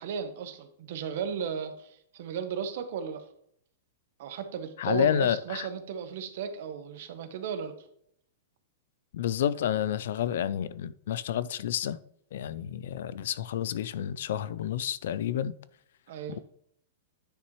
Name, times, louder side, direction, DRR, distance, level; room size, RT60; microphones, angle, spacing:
voice 1, 0.0-3.3 4.2-7.7 16.1-16.4, right 7 dB, 55° right, 1.1 m, -35 dB
voice 2, 4.8-5.7 9.1-12.0 12.3-15.6, left 10 dB, 65° left, 0.4 m, -29 dB
9.9 x 5.9 x 3.1 m
supercardioid pair, 170°, 0 cm